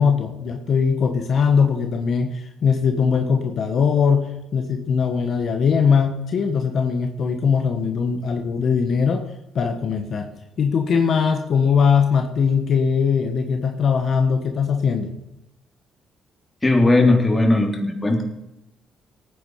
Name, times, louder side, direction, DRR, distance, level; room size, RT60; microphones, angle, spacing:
voice 1, 0.0-9.3 9.5-10.3 10.6-15.1, left 6 dB, 60° left, 5 dB, 1.5 m, -20 dB
voice 2, 16.6-18.2, left 2 dB, 20° left, 2 dB, 3.5 m, -17 dB
18.0 x 9.7 x 5.0 m, 0.90 s
cardioid pair, 90°, 0 cm